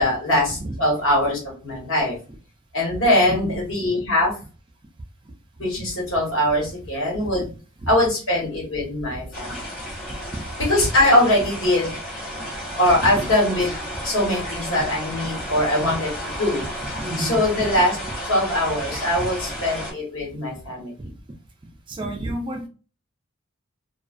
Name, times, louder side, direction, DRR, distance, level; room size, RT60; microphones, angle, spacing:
voice 1, 0.0-2.2 2.7-4.3 5.6-7.5 7.9-9.6 10.7-11.9 12.8-16.6 17.2-18.0 18.3-20.9, left 1 dB, 75° left, 1.3 m, -22 dB
voice 2, 3.1-3.6 7.8-7.9 10.3-10.4 13.0-13.3 15.1-15.2 15.5-15.6 17.0-17.7 19.2-19.3 21.0-21.1 21.9-22.7, right 1 dB, 25° right, 0.3 m, -31 dB
sound 1, 9.3-19.9, equal, 40° left, 1.3 m, -33 dB
2.3 x 2.2 x 2.4 m
head